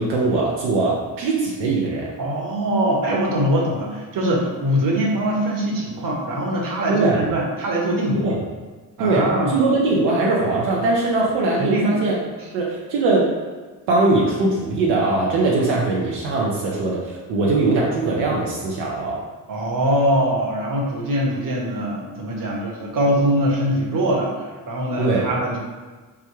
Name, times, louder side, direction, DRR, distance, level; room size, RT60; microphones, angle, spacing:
voice 1, 0.0-2.1 6.9-7.3 8.2-8.4 9.0-12.2 12.5-13.3 13.9-19.2 25.0-25.2, right 3 dB, 85° right, -3 dB, 0.6 m, -21 dB
voice 2, 2.2-8.3 9.0-9.6 11.6-12.0 19.5-25.6, right 1 dB, 50° right, -2 dB, 1.0 m, -22 dB
3.5 x 2.2 x 3.0 m, 1.3 s
supercardioid pair, 50°, 42 cm